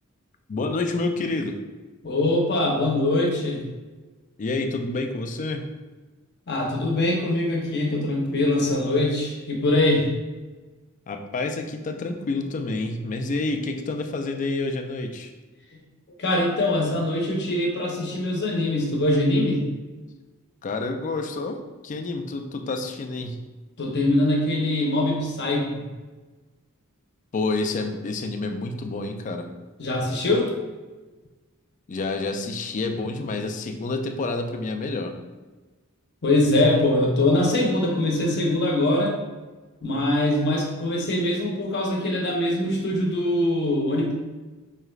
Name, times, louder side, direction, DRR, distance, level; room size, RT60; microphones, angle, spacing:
voice 1, 0.5-1.6 4.4-5.6 11.1-15.3 20.6-23.4 27.3-29.5 31.9-35.1, left 3 dB, 35° left, 5 dB, 0.3 m, -28 dB
voice 2, 2.0-3.7 6.5-10.1 16.2-19.6 23.8-25.8 29.8-30.5 36.2-39.2 39.8-44.1, left 1 dB, 50° left, -1 dB, 0.8 m, -23 dB
4.7 x 3.2 x 2.3 m, 1.2 s
head